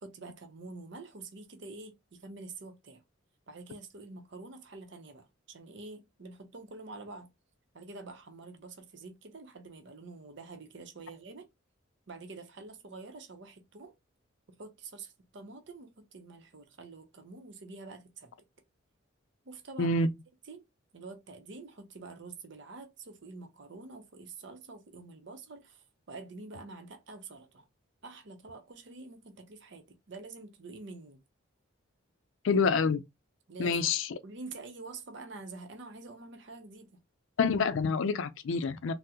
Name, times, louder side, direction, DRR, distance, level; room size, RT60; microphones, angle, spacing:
voice 1, 0.0-3.0 3.5-7.3 7.7-11.5 12.1-13.9 14.6-18.3 19.4-20.0 20.5-20.6 20.9-27.7 28.0-31.2 33.5-33.8 34.2-36.9, right 3 dB, 60° right, 0.6 m, -47 dB
voice 2, 32.4-33.0 33.6-34.2 37.4-38.9, left 4 dB, 75° left, 0.4 m, -27 dB
3.6 x 2.0 x 2.7 m
head